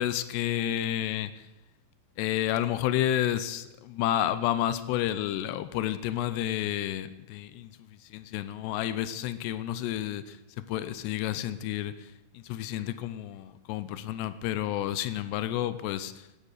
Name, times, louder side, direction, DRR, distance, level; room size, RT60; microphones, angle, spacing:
voice 1, 0.0-1.4 2.2-7.7 8.1-10.4 10.7-12.1 12.3-16.1, left 12 dB, 90° left, 13 dB, 3.0 m, -30 dB
18.0 x 12.5 x 6.6 m, 0.94 s
omnidirectional pair, 4.8 m